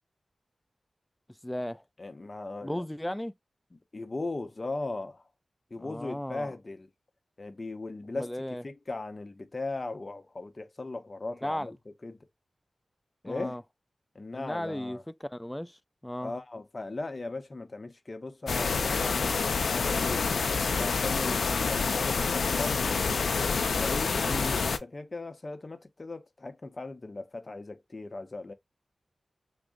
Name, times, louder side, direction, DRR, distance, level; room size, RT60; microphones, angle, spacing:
voice 1, 1.4-1.8 2.6-3.3 5.8-6.5 8.2-8.6 11.4-11.7 13.2-13.6 14.3-16.3 24.2-24.6, left 1 dB, 10° left, 0.3 m, -35 dB
voice 2, 2.0-2.8 3.7-5.2 5.7-6.9 7.4-8.3 8.6-11.7 12.0-12.2 13.2-13.6 14.1-15.0 16.2-20.3 20.8-23.1 23.7-24.3 24.6-28.5, left 2 dB, 40° left, 0.6 m, -38 dB
sound 1, 18.5-24.8, left 5 dB, 85° left, 0.4 m, -27 dB
3.5 x 2.0 x 3.6 m
wide cardioid pair, 65°, 0 cm